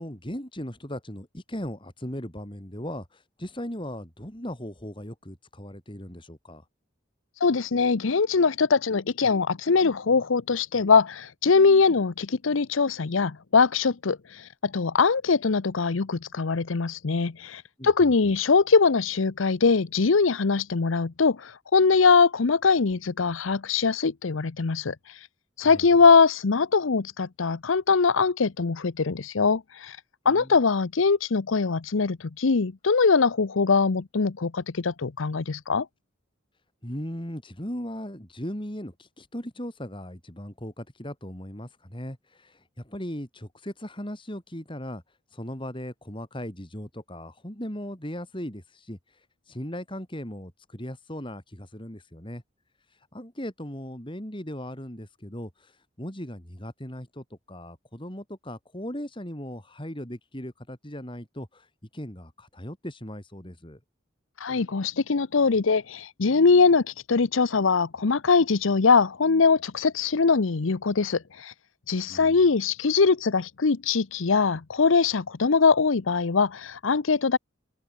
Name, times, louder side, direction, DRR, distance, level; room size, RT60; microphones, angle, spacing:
voice 1, 0.0-6.7 17.8-18.3 25.6-25.9 30.3-30.6 36.8-45.0 45.3-52.4 52.9-63.8 72.1-72.4, equal, 25° left, 5.2 m, -38 dB
voice 2, 7.4-25.3 25.6-30.0 30.2-35.9 64.4-71.5 71.9-77.4, left 4 dB, 80° left, 0.7 m, -22 dB
head